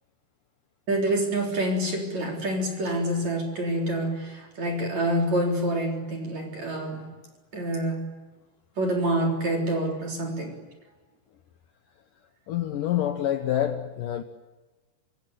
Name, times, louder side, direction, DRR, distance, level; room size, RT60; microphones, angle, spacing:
voice 1, 0.9-7.1 7.5-8.1 8.8-10.6, right 1 dB, 40° right, 4.5 m, -27 dB
voice 2, 12.5-14.2, left 11 dB, 80° left, 1.9 m, -27 dB
26.5 x 22.0 x 10.0 m
omnidirectional pair, 5.6 m